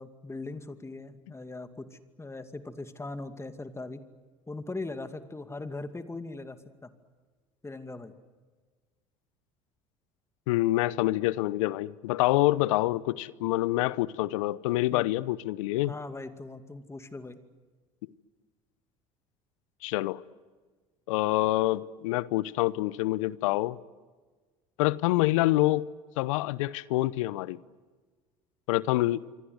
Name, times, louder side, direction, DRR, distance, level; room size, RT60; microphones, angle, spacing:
voice 1, 0.0-4.0 4.5-6.9 7.6-8.1 14.9-15.0 15.8-17.4, left 2 dB, 15° left, 2.4 m, -40 dB
voice 2, 10.5-15.9 19.8-20.2 21.1-23.8 24.8-25.8 26.2-27.6 28.7-29.2, left 17 dB, 75° left, 0.8 m, -26 dB
27.0 x 24.5 x 8.0 m
hypercardioid pair, 70°, 17 cm